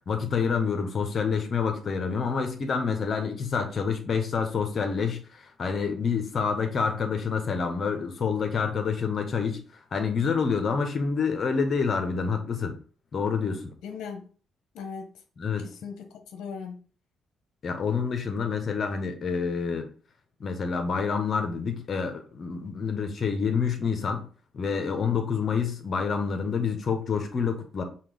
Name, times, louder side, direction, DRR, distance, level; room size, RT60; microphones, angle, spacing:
voice 1, 0.1-9.6 9.9-12.8 13.1-13.7 15.4-15.7 17.6-19.9 20.4-24.3 24.5-27.8, left 5 dB, 50° left, 1.0 m, -27 dB
voice 2, 13.8-14.3 14.7-15.1 15.6-16.8, left 6 dB, 80° left, 0.7 m, -38 dB
5.7 x 2.4 x 3.5 m
cardioid pair, 90°, 0 cm